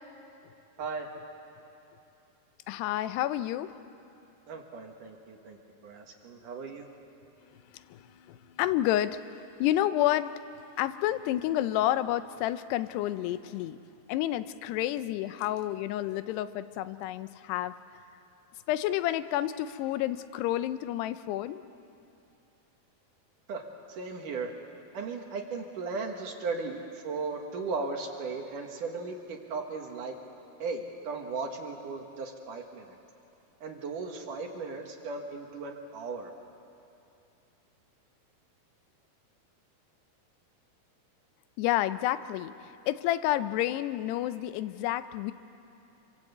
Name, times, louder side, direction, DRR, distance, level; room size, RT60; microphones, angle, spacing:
voice 1, 0.8-1.1 4.5-5.6 5.8-6.9 23.5-23.6 23.9-24.5 24.9-30.2 30.6-33.0 33.6-36.3, right 4 dB, 60° right, 3 dB, 2.8 m, -36 dB
voice 2, 2.7-3.8 7.5-10.3 10.8-13.8 14.1-17.7 18.7-21.6 41.6-45.3, left 13 dB, 85° left, 13 dB, 2.8 m, -30 dB
26.5 x 24.5 x 8.2 m, 2.8 s
omnidirectional pair, 4.7 m